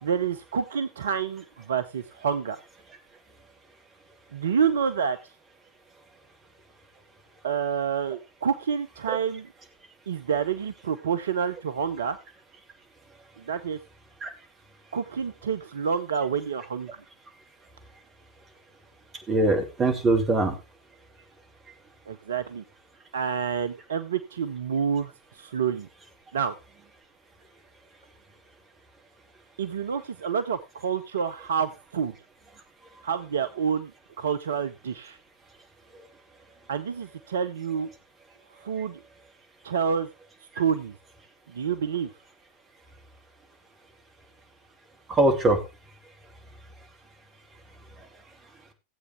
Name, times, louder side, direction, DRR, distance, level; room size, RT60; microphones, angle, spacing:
voice 1, 0.0-2.6 4.3-5.2 7.4-9.5 10.1-12.2 13.4-13.8 14.9-16.9 22.1-22.6 23.1-25.9 26.3-26.5 29.6-32.1 33.0-33.9 34.2-35.2 36.7-37.9 38.6-39.0 39.6-40.1 40.6-41.0 41.5-42.1, right 7 dB, 65° right, 12 dB, 0.6 m, -28 dB
voice 2, 19.3-20.6 45.1-45.6 48.0-48.1, right 2 dB, 25° right, 5 dB, 2.7 m, -22 dB
16.5 x 8.2 x 3.5 m, 0.28 s
figure-of-eight pair, 90°, 0 cm